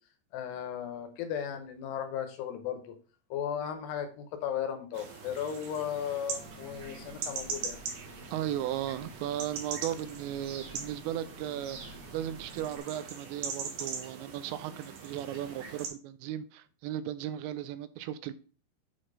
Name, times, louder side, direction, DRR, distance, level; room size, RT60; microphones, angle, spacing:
voice 1, 0.3-2.9 3.3-7.8, left 9 dB, 75° left, 2.8 m, -36 dB
sound 1, 4.9-15.9, right 5 dB, 65° right, 2.8 m, -41 dB
Engine, 6.3-12.8, left 2 dB, 60° left, 1.8 m, -52 dB
voice 2, 8.3-18.3, right 12 dB, 85° right, 2.8 m, -36 dB
7.8 x 4.3 x 4.9 m
omnidirectional pair, 5.1 m